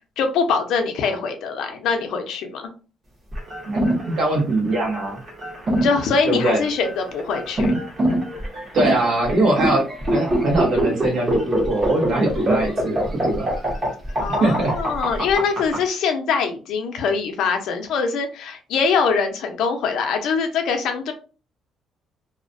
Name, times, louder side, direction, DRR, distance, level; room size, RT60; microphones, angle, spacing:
voice 1, 0.2-2.7 5.8-7.7 14.2-21.1, left 5 dB, 70° left, 5 dB, 0.5 m, -23 dB
sound 1, 3.3-15.8, right 1 dB, 25° right, 0.8 m, -23 dB
voice 2, 4.1-5.2 6.3-6.6 8.7-9.8 10.1-13.5 14.4-14.7, right 2 dB, 55° right, -1 dB, 0.9 m, -21 dB
2.3 x 2.1 x 2.5 m, 0.35 s
cardioid pair, 165°, 0 cm